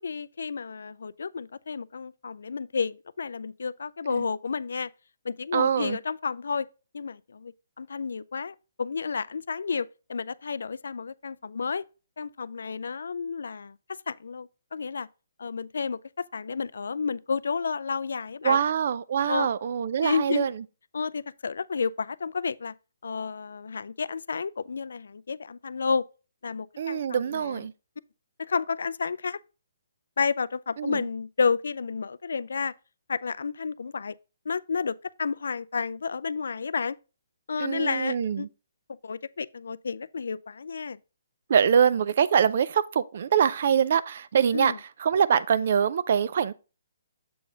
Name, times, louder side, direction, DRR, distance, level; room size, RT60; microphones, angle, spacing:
voice 1, 0.0-4.9 5.2-6.7 6.9-11.8 12.2-15.1 15.4-18.6 19.3-19.5 20.0-20.5 20.9-22.7 23.0-26.0 26.4-27.7 28.5-29.4 30.2-32.7 33.1-34.1 34.5-37.0 37.5-38.5 39.0-41.0 44.5-44.8, left 5 dB, 80° left, 0.3 m, -31 dB
voice 2, 5.5-6.0 18.4-20.5 26.8-27.7 30.8-31.0 37.6-38.5 41.5-44.7 45.0-46.5, right 7 dB, 50° right, 0.4 m, -24 dB
7.6 x 4.0 x 3.8 m
hypercardioid pair, 165°, 0 cm